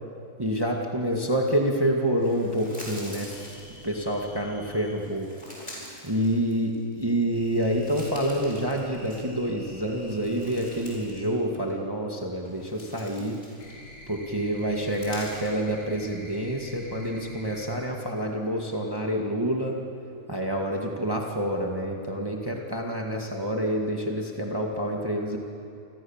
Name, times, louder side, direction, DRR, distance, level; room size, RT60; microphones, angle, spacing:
voice 1, 0.4-3.4 3.8-5.3 6.0-13.4 14.1-19.8 20.3-25.4, equal, 15° right, 0 dB, 2.0 m, -27 dB
sound 1, 2.2-4.2 4.9-6.9 7.3-9.5 9.8-11.3 11.5-11.7 12.3-14.0 14.7-15.6, equal, 30° left, 7.4 m, -45 dB
sound 2, 3.3-4.9 7.3-11.2 12.6-17.9 18.2-18.8, left 1 dB, 70° left, 6.2 m, -47 dB
30.0 x 26.5 x 7.4 m, 2.5 s
omnidirectional pair, 1.4 m